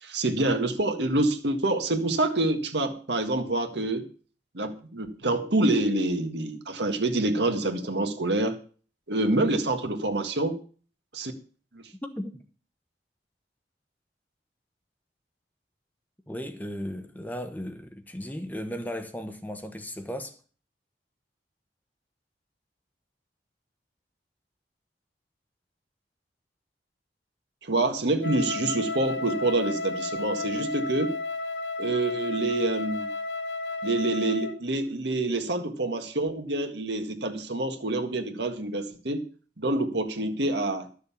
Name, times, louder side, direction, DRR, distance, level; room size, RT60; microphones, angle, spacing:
voice 1, 0.0-4.1 4.5-8.6 9.1-10.6 11.1-11.3 11.7-11.8 27.6-31.2 31.8-33.1 33.8-39.2 39.6-40.9, right 2 dB, 75° right, 1.7 m, -27 dB
voice 2, 12.0-12.4 16.3-20.4, equal, 10° left, 0.9 m, -36 dB
Wind instrument woodwind instrument, 28.2-34.6, left 2 dB, 75° left, 0.9 m, -33 dB
12.5 x 6.6 x 7.1 m
head